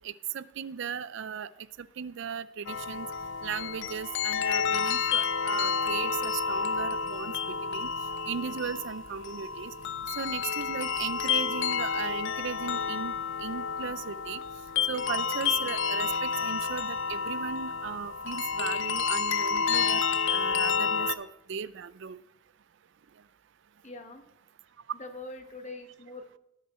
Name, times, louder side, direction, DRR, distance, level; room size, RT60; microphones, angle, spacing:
voice 1, 0.0-1.5 1.8-3.1 3.4-7.9 8.3-9.7 10.2-14.4 14.9-22.2, right 7 dB, 60° right, 17 dB, 0.4 m, -37 dB
sound 1, 2.7-21.2, left 5 dB, 65° left, 0.5 m, -30 dB
voice 2, 23.8-24.2 24.9-26.4, left 2 dB, 35° left, 6 dB, 1.2 m, -43 dB
16.5 x 6.9 x 4.3 m, 0.83 s
head